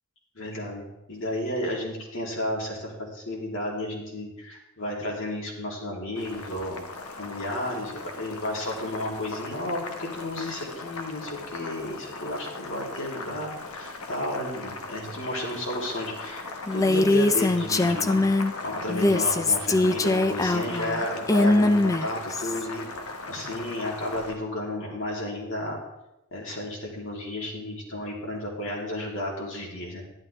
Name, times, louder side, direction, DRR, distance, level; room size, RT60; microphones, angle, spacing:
voice 1, 0.3-6.8 7.1-18.2 18.6-22.9 23.3-25.8 26.3-30.0, left 1 dB, 60° left, -2 dB, 2.8 m, -32 dB
Boiling, 6.1-24.4, left 3 dB, 75° left, 1.2 m, -39 dB
Female speech woman speaking, 16.7-18.5 18.9-22.6, left 2 dB, 15° left, 0.4 m, -22 dB
11.5 x 11.0 x 3.3 m, 0.92 s
head